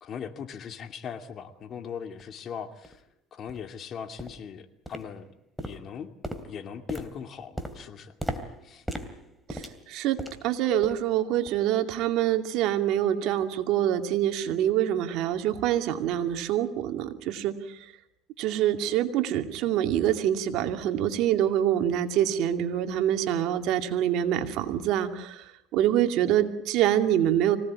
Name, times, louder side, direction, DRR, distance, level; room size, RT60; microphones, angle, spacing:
voice 1, 0.0-3.0 3.3-6.1 6.4-8.1 8.6-8.8, left 7 dB, 45° left, 8 dB, 2.4 m, -39 dB
sound 1, 2.2-2.3 2.8-3.0 3.5-3.7 4.2-4.5 4.9-5.3 5.6-10.5 10.8-11.1 11.5-11.6 12.2-12.3, equal, ahead, 2.9 m, -38 dB
voice 2, 9.5-10.2 10.4-17.9 18.4-27.6, right 11 dB, 65° right, 7 dB, 2.4 m, -26 dB
25.5 x 18.0 x 9.6 m, 0.82 s
supercardioid pair, 110°, 0 cm